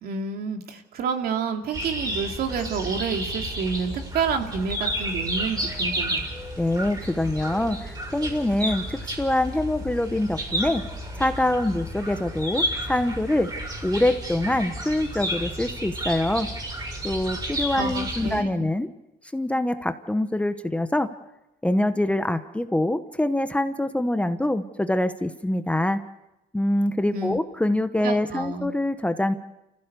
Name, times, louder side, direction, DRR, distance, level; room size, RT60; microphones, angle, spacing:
voice 1, 0.0-6.2 17.8-18.7 27.1-27.4 28.0-28.7, right 5 dB, 65° right, 4 dB, 2.6 m, -29 dB
sound 1, 1.7-18.4, right 1 dB, 25° right, 5.1 m, -31 dB
voice 2, 6.6-10.8 11.2-13.5 13.8-16.5 17.0-18.9 19.3-21.1 21.6-26.0 26.5-29.3, left 1 dB, 5° left, 9 dB, 1.0 m, -24 dB
29.5 x 15.5 x 6.9 m, 0.94 s
cardioid pair, 110°, 17 cm